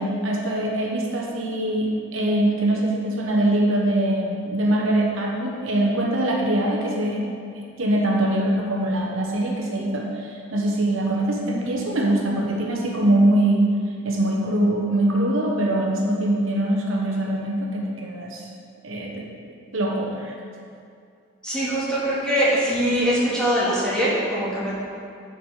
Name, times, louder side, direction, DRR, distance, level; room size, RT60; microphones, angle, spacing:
voice 1, 0.0-7.3 7.8-13.8 14.0-18.4 18.8-19.2 19.7-20.3, right 1 dB, 75° right, -1 dB, 1.2 m, -23 dB
voice 2, 21.4-24.7, equal, 5° left, -9 dB, 2.0 m, -22 dB
10.5 x 5.0 x 4.9 m, 2.4 s
head